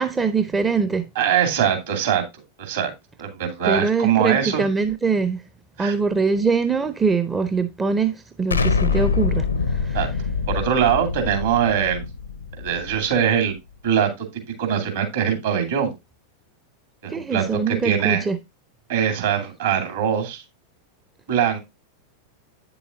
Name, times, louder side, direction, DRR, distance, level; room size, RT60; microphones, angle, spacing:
voice 1, 0.0-1.1 3.6-5.4 5.8-10.0 17.1-18.4, right 5 dB, 15° right, 0.6 m, -23 dB
voice 2, 1.2-2.2 2.6-2.9 3.2-4.6 5.8-5.9 9.9-10.1 10.5-12.0 12.6-13.5 13.8-15.9 17.0-18.2 18.9-20.4 21.3-21.6, right 8 dB, 60° right, 2.5 m, -22 dB
Explosion, 8.5-13.3, left 5 dB, 75° left, 0.6 m, -25 dB
8.8 x 6.9 x 2.5 m
figure-of-eight pair, 90°, 0 cm